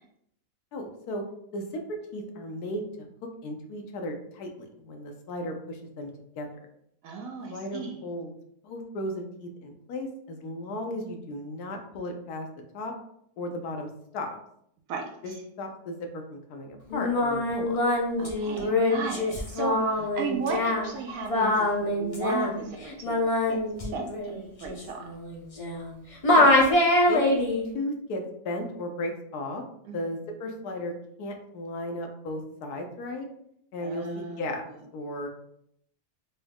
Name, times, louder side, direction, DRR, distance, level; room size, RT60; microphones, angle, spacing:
voice 1, 0.7-1.2 1.5-2.8 3.4-6.5 7.5-8.3 8.6-12.5 12.7-12.9 13.4-13.9 14.1-14.3 15.2-15.3 15.6-17.8 20.0-20.1 26.4-26.6 27.1-29.6 29.9-30.9 31.2-33.3 33.7-34.6 34.9-35.3, left 1 dB, 80° left, 4 dB, 1.2 m, -35 dB
voice 2, 7.0-8.0 14.9-15.4 18.2-23.2 23.5-25.1 29.9-30.1 33.8-34.8, right 5 dB, 65° right, 2 dB, 1.0 m, -36 dB
Singing, 16.9-25.9 26.2-27.6, left 1 dB, 60° left, 0.3 m, -24 dB
4.1 x 2.3 x 3.4 m, 0.72 s
omnidirectional pair, 1.7 m